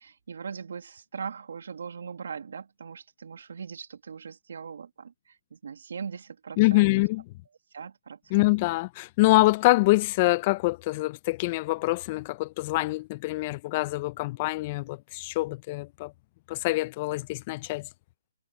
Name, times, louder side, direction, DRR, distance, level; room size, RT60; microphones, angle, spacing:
voice 1, 0.0-6.9 7.7-8.5, right 6 dB, 60° right, 2.0 m, -40 dB
voice 2, 6.6-7.2 8.3-16.1 16.5-17.9, left 21 dB, 25° left, 0.5 m, -25 dB
hypercardioid pair, 155°, 0 cm